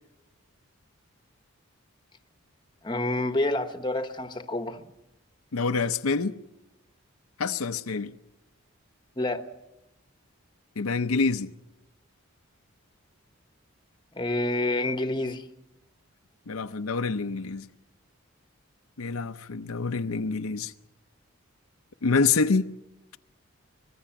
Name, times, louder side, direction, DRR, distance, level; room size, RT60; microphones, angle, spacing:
voice 1, 2.8-4.9 9.2-9.5 14.1-15.5, left 2 dB, 20° left, 1.0 m, -28 dB
voice 2, 5.5-6.4 7.4-8.1 10.8-11.5 16.5-17.7 19.0-20.7 22.0-22.7, left 4 dB, 80° left, 0.7 m, -26 dB
25.0 x 21.0 x 5.9 m
head